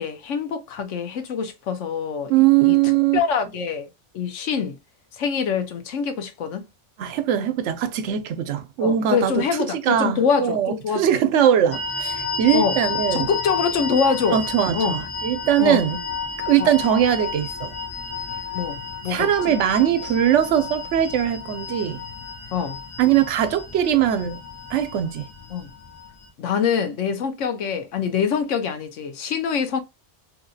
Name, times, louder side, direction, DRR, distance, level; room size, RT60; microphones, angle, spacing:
voice 1, 0.0-2.8 3.1-3.9 4.1-4.8 5.1-6.6 8.8-11.2 12.5-12.8 13.1-14.4 14.7-15.0 15.6-15.8 16.6-16.8 18.5-19.5 22.5-22.8 25.5-25.7 26.4-29.8, left 6 dB, 90° left, 1.1 m, -25 dB
voice 2, 2.3-3.2 7.0-9.4 9.8-13.3 14.3-16.0 16.4-17.7 19.1-22.0 23.0-24.4 24.7-25.3, right 10 dB, 75° right, 0.9 m, -21 dB
sound 1, 11.7-26.3, left 5 dB, 30° left, 1.0 m, -31 dB
2.9 x 2.8 x 2.6 m
omnidirectional pair, 1.2 m